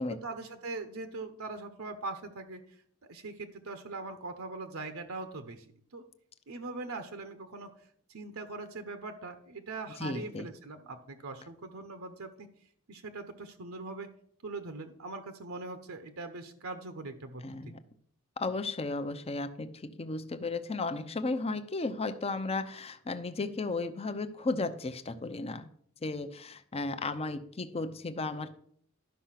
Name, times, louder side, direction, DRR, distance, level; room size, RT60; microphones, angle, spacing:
voice 1, 0.2-2.8 3.0-5.6 5.9-6.1 6.5-7.7 8.1-12.5 12.9-14.1 14.4-17.7, right 3 dB, 75° right, 8 dB, 0.9 m, -41 dB
voice 2, 10.0-10.5 17.4-17.8 18.4-25.7 26.0-28.6, left 3 dB, 30° left, 10 dB, 0.6 m, -34 dB
11.5 x 5.5 x 5.8 m, 0.63 s
head